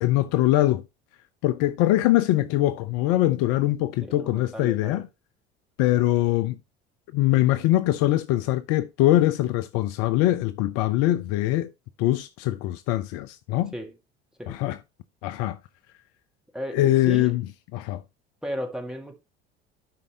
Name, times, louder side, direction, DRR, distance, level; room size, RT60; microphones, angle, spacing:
voice 1, 0.0-0.8 1.4-5.1 5.8-6.6 7.1-11.7 12.0-13.7 14.5-14.8 15.2-15.6 16.7-17.4 17.7-18.0, left 15 dB, 50° left, 0.5 m, -22 dB
voice 2, 4.1-5.0 13.7-13.9 14.4-14.6 16.5-17.4 18.4-19.2, equal, ahead, 1.7 m, -35 dB
11.5 x 5.2 x 2.8 m
figure-of-eight pair, 65°, 32 cm